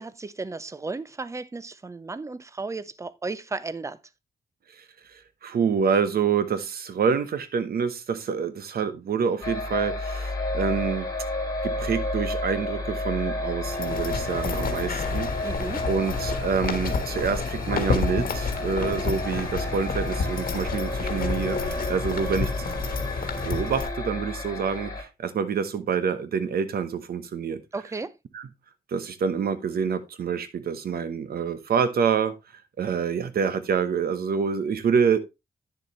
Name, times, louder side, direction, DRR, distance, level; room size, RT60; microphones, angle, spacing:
voice 1, 0.0-4.0 15.4-15.9 27.7-28.1, right 3 dB, 20° right, 0.6 m, -34 dB
voice 2, 5.4-11.1 11.6-15.3 15.9-22.7 23.4-27.6 28.3-28.4 28.9-32.3 32.8-35.2, right 6 dB, 80° right, 1.0 m, -27 dB
sound 1, 9.4-25.0, left 2 dB, 25° left, 3.3 m, -31 dB
sound 2, 13.6-23.9, left 5 dB, 70° left, 1.5 m, -30 dB
9.9 x 6.9 x 3.1 m
wide cardioid pair, 120°, 16 cm